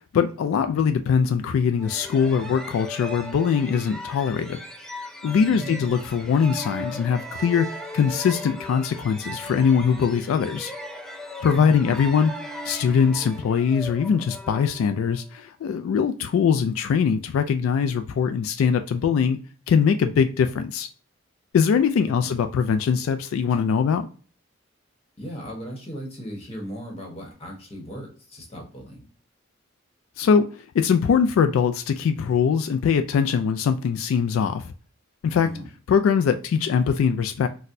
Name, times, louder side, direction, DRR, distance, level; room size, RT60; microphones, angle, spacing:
voice 1, 0.1-4.6 5.2-10.7 11.4-12.3 12.7-19.4 19.7-20.9 21.5-24.1 30.2-30.5 30.7-34.6 35.2-35.5 35.9-37.5, left 6 dB, 85° left, 0.3 m, -22 dB
sound 1, 1.8-15.3, left 1 dB, 5° left, 0.4 m, -38 dB
voice 2, 5.4-6.2 11.5-11.9 22.0-22.4 25.2-29.0 35.4-35.7, equal, 30° left, 1.0 m, -38 dB
4.1 x 2.1 x 2.6 m
head